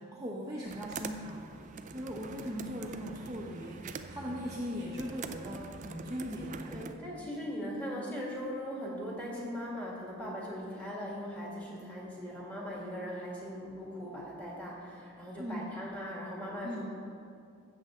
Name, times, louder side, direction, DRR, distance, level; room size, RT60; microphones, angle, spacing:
voice 1, 0.0-7.0 15.4-15.7 16.6-16.9, equal, 15° right, -5 dB, 0.8 m, -39 dB
sound 1, 0.6-6.9, right 4 dB, 35° right, 0.4 m, -44 dB
voice 2, 6.7-16.9, equal, 5° left, -5 dB, 1.9 m, -39 dB
13.5 x 7.8 x 3.7 m, 2.4 s
head